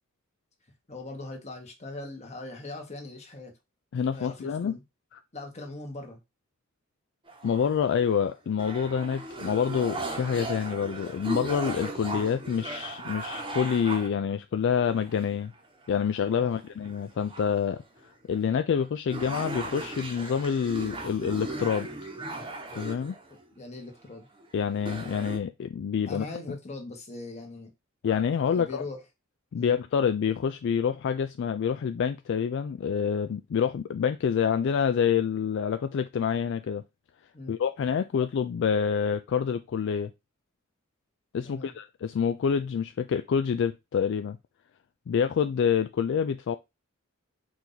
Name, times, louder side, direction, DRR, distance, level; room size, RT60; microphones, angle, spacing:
voice 1, 0.9-3.5 4.1-4.8 5.3-6.2 16.4-16.6 23.3-24.3 26.1-27.7 28.5-29.0 29.5-29.8 37.3-37.6 41.4-41.7, left 2 dB, 35° left, 1.3 m, -41 dB
voice 2, 3.9-4.7 7.4-15.5 15.9-17.8 18.3-21.9 22.7-23.2 24.5-26.3 28.0-28.8 29.5-36.8 37.5-40.1 41.3-44.4 45.1-46.5, left 7 dB, 60° left, 0.3 m, -27 dB
sound 1, 7.3-8.1 8.6-14.1 14.9-15.6 15.9-16.0 16.5-17.7 18.3-18.4 18.8-18.9 19.1-23.4 24.3-24.5 24.7-25.4, right 2 dB, 25° right, 1.0 m, -37 dB
4.6 x 2.7 x 3.9 m
head